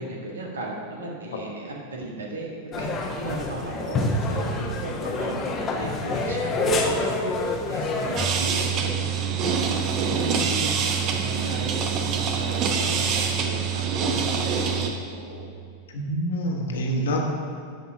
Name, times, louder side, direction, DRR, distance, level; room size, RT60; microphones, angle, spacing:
voice 1, 0.0-9.1 9.4-15.5, right 1 dB, 70° right, 0 dB, 1.7 m, -36 dB
sound 1, 2.7-8.3, left 2 dB, 25° left, 1.2 m, -27 dB
sound 2, 8.2-14.9, right 6 dB, 35° right, 1.0 m, -25 dB
voice 2, 15.9-17.2, equal, 60° left, 1 dB, 1.6 m, -26 dB
12.0 x 5.5 x 5.3 m, 2.4 s
figure-of-eight pair, 90°, 0 cm